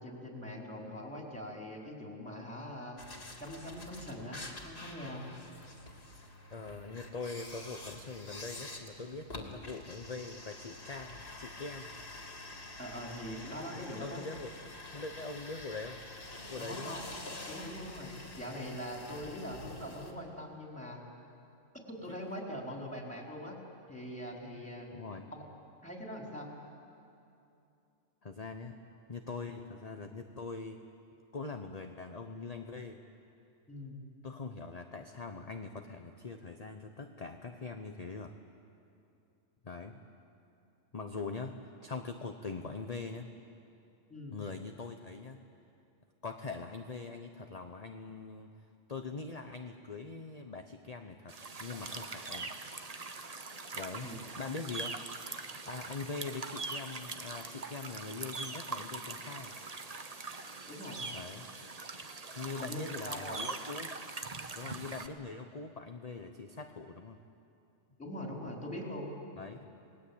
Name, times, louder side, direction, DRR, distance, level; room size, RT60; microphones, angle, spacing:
voice 1, 0.0-3.0 3.4-4.4 4.6-5.3 12.8-14.2 16.6-17.1 17.5-21.0 22.0-23.6 23.9-24.9 25.3-25.4 25.7-26.5 33.7-34.0 44.1-44.4 54.0-54.1 60.7-61.0 62.4-63.4 68.0-69.1, left 1 dB, 5° left, -1 dB, 4.3 m, -42 dB
sound 1, 3.0-20.1, left 2 dB, 50° left, 2.8 m, -47 dB
voice 2, 6.5-11.9 13.7-16.0 16.5-17.0 19.1-19.4 22.0-22.3 24.9-25.3 28.2-28.8 29.1-30.8 31.3-33.0 34.2-38.3 39.6-40.0 40.9-43.3 44.3-45.4 46.2-52.5 53.7-54.1 54.4-54.9 55.7-59.6 61.1-61.5 62.4-63.9 64.5-67.2 69.4-69.7, left 4 dB, 30° left, 5 dB, 1.0 m, -43 dB
sound 2, 51.3-65.1, right 3 dB, 30° right, 1.1 m, -42 dB
29.5 x 20.5 x 8.7 m, 2.7 s
omnidirectional pair, 1.4 m